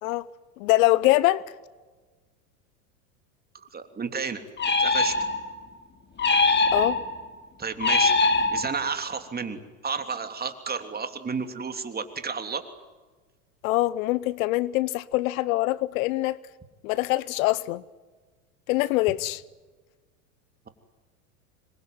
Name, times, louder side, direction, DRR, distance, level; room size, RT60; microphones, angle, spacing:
voice 1, 0.6-1.4 6.7-7.0 13.6-16.4 16.8-17.8 18.7-19.4, left 18 dB, 65° left, 1.0 m, -24 dB
voice 2, 3.5-4.4 4.8-5.2 7.6-8.1 8.5-12.6, right 5 dB, 20° right, 3.2 m, -32 dB
sound 1, 4.6-5.6 6.2-7.2 7.8-9.0, left 3 dB, 25° left, 2.6 m, -23 dB
26.5 x 22.5 x 9.4 m
hypercardioid pair, 95°, 45 cm